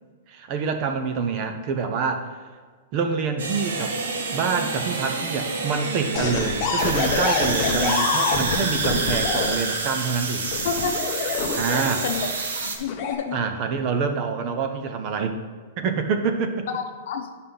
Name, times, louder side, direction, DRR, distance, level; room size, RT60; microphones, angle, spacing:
voice 1, 0.3-2.3 2.9-3.9 4.3-10.5 11.6-12.1 13.3-15.4 15.8-16.7, right 5 dB, 30° right, 7 dB, 0.6 m, -26 dB
sound 1, 3.4-12.8, right 3 dB, 85° right, 1.3 m, -28 dB
sound 2, 6.1-9.5 10.5-12.1 12.8-13.1, left 5 dB, 25° left, 0.9 m, -25 dB
voice 2, 10.6-11.0 11.7-12.3 12.6-13.4 16.7-17.2, left 6 dB, 55° left, 6 dB, 0.8 m, -29 dB
9.7 x 5.6 x 3.8 m, 1.5 s
supercardioid pair, 170°, 0 cm